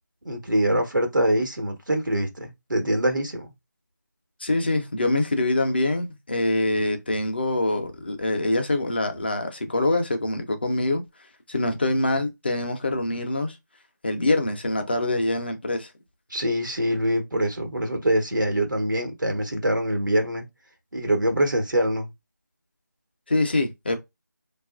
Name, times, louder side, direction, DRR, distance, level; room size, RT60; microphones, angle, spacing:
voice 1, 0.2-3.5 16.3-20.4 20.9-22.1, right 1 dB, 85° right, 1.0 m, -24 dB
voice 2, 4.4-11.0 11.5-13.6 14.0-15.9 23.3-24.0, left 2 dB, 30° left, 0.5 m, -24 dB
2.8 x 2.3 x 2.4 m
figure-of-eight pair, 170°, 10 cm